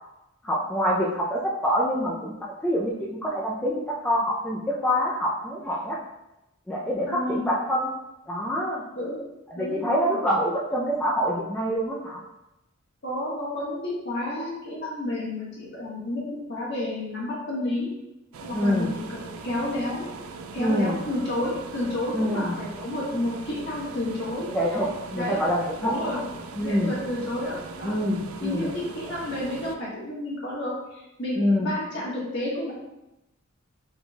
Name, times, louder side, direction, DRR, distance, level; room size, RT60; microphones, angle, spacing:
voice 1, 0.4-6.0 6.7-7.9 8.3-8.8 9.5-12.2 18.5-18.9 20.6-21.0 22.1-22.5 24.5-25.9 26.6-26.9 27.8-28.7 31.4-31.7, equal, 10° left, -5 dB, 0.4 m, -26 dB
voice 2, 7.1-7.5 8.9-9.2 9.5-10.2 13.0-17.9 18.4-18.9 19.2-20.1 20.5-24.5 25.1-25.4 25.8-26.2 26.6-27.9 28.4-32.7, left 1 dB, 55° left, -6 dB, 1.4 m, -31 dB
sound 1, 18.3-29.8, right 4 dB, 80° right, 0.4 m, -40 dB
4.1 x 3.8 x 2.2 m, 0.92 s
head